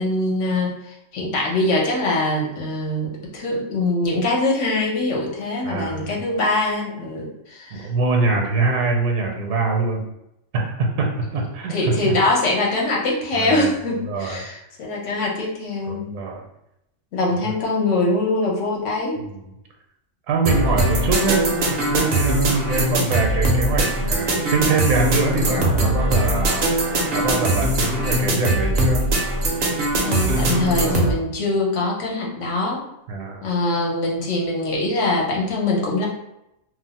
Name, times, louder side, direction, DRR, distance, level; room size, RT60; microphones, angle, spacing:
voice 1, 0.0-7.9 11.7-16.1 17.1-19.2 30.0-32.8 33.4-36.1, left 2 dB, 65° left, -2 dB, 1.0 m, -23 dB
voice 2, 5.6-6.2 7.7-10.0 10.5-12.1 13.3-13.7 14.0-14.4 15.9-16.4 17.4-17.5 19.2-19.5 20.3-29.0 33.1-33.4, right 3 dB, 75° right, 1 dB, 1.0 m, -24 dB
sound 1, 20.4-31.1, right 1 dB, 60° right, 0.5 m, -21 dB
2.5 x 2.0 x 3.9 m, 0.85 s
omnidirectional pair, 1.4 m